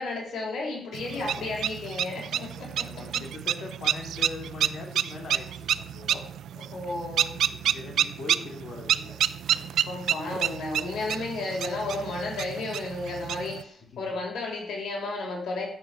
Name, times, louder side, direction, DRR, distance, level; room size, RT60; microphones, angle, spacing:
voice 1, 0.0-3.1 6.1-6.2 6.5-7.4 9.8-15.7, left 3 dB, 70° left, -1 dB, 6.8 m, -33 dB
sound 1, 0.9-13.6, right 10 dB, 85° right, 0.6 m, -29 dB
voice 2, 1.1-1.5 2.8-6.3 7.0-9.2 13.9-14.1, left 3 dB, 50° left, 2 dB, 4.5 m, -42 dB
14.0 x 8.0 x 7.8 m, 0.65 s
wide cardioid pair, 170°, 0 cm